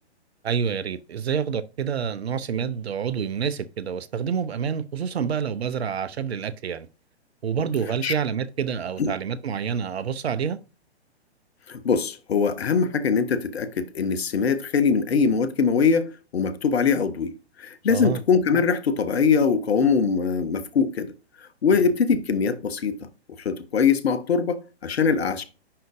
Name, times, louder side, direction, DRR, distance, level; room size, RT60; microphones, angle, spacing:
voice 1, 0.4-6.9 7.4-10.6 17.9-18.2, right 7 dB, 70° right, 0.7 m, -27 dB
voice 2, 11.7-17.3 17.6-21.1 21.6-23.1 23.4-25.4, left 5 dB, 70° left, 1.0 m, -22 dB
10.0 x 3.9 x 2.5 m
figure-of-eight pair, 120°, 33 cm